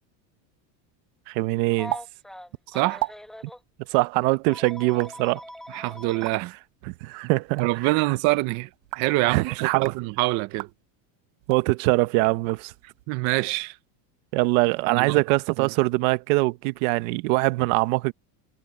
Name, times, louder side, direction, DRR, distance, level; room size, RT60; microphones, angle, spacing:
voice 1, 1.3-1.9 3.9-5.4 6.9-8.2 9.3-9.9 11.5-12.7 14.3-18.1, right 23 dB, 55° right, 1.1 m, -23 dB
Telephone, 1.7-3.6 4.5-6.4 7.7-7.9 9.4-9.6, equal, ahead, 1.1 m, -42 dB
sound 1, 1.9-2.0 2.3-2.4 2.8-3.1 3.9-4.1 4.8-5.1 6.1-6.3 7.4-7.7 8.7-9.2 9.7-10.0 10.5-10.7 11.4-11.6 12.3-13.0, right 19 dB, 90° right, 4.6 m, -35 dB
voice 2, 2.7-3.0 5.7-6.5 7.6-8.7 9.0-10.7 13.1-13.7 14.9-15.2, right 20 dB, 35° right, 0.6 m, -25 dB
supercardioid pair, 160°, 50 cm